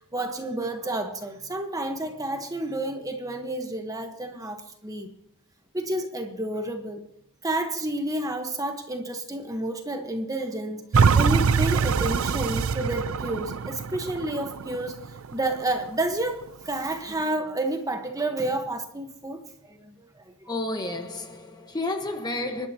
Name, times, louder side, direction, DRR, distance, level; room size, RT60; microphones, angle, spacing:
voice 1, 0.0-5.1 5.7-7.0 7.4-14.9 15.3-20.5, right 1 dB, 15° right, 1.2 m, -30 dB
sound 1, 10.9-16.0 16.5-16.6, right 5 dB, 65° right, 0.5 m, -24 dB
voice 2, 20.5-22.7, left 2 dB, 20° left, 1.3 m, -31 dB
25.5 x 12.0 x 2.9 m
head